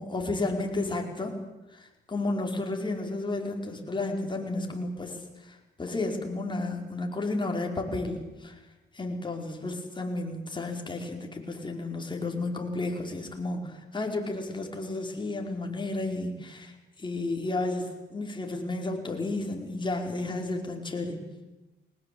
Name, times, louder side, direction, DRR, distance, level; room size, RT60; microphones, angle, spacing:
voice 1, 0.0-1.3 1.7-8.6 8.9-21.2, left 2 dB, 25° left, 2 dB, 5.0 m, -32 dB
21.5 x 19.0 x 8.7 m, 1.0 s
cardioid pair, 90°, 20 cm